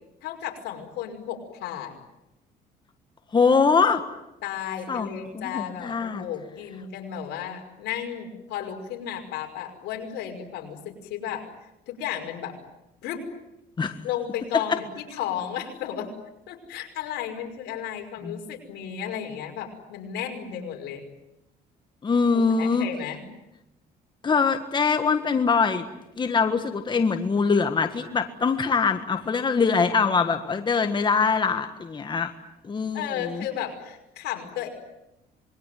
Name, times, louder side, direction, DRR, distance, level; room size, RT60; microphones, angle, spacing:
voice 1, 0.2-1.9 4.4-11.5 11.9-12.6 13.0-13.3 14.0-14.8 15.1-16.1 16.5-21.0 22.3-23.3 32.9-34.7, left 10 dB, 80° left, 3 dB, 5.7 m, -33 dB
voice 2, 3.3-4.0 4.9-6.2 13.8-14.0 14.5-14.8 18.2-18.4 22.0-22.9 24.2-25.9 26.2-32.3 32.6-33.5, left 5 dB, 25° left, 7 dB, 1.7 m, -23 dB
26.5 x 22.0 x 9.3 m, 0.91 s
cardioid pair, 110°, 17 cm